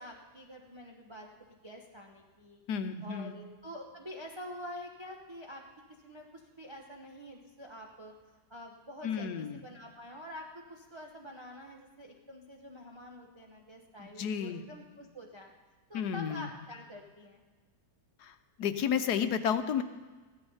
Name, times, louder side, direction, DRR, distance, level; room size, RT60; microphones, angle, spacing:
voice 1, 0.0-2.6 3.0-5.6 6.0-15.5 15.9-17.4, equal, 20° right, 0 dB, 1.0 m, -47 dB
voice 2, 2.7-3.3 9.0-9.6 14.0-14.6 15.9-16.5 18.2-19.8, left 7 dB, 75° left, 10 dB, 1.3 m, -32 dB
15.5 x 12.0 x 5.5 m, 1.3 s
omnidirectional pair, 1.7 m